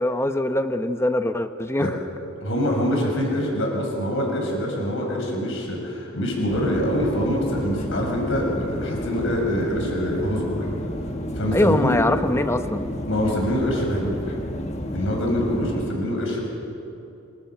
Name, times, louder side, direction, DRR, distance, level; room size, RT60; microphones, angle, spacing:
voice 1, 0.0-1.9 11.5-12.9, left 1 dB, 10° left, 8 dB, 0.8 m, -22 dB
voice 2, 2.4-10.7 11.3-11.9 13.1-14.4 14.9-16.4, equal, 65° left, 0 dB, 6.2 m, -25 dB
sound 1, 6.5-15.9, equal, 30° left, 1.3 m, -31 dB
27.0 x 24.5 x 5.9 m, 2.8 s
head